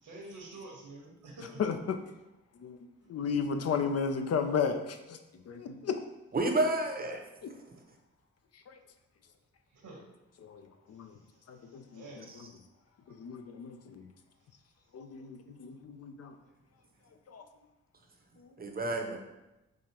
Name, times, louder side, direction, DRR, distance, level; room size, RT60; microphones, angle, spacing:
voice 1, 0.0-1.6 9.7-10.0 10.9-12.3 14.4-14.5, right 2 dB, 65° right, 0 dB, 1.1 m, -49 dB
voice 2, 1.6-2.0 2.6-2.8 3.1-5.2 5.5-6.0 7.4-7.5 8.7-8.8 10.4-11.2 11.5-12.3 13.1-14.1 14.9-16.3 17.3-17.4 18.4-18.5, left 6 dB, 50° left, 7 dB, 0.4 m, -34 dB
voice 3, 6.3-7.2 18.6-19.2, right 2 dB, 30° right, 2 dB, 0.8 m, -29 dB
4.8 x 2.4 x 2.9 m, 0.98 s
supercardioid pair, 40°, 33 cm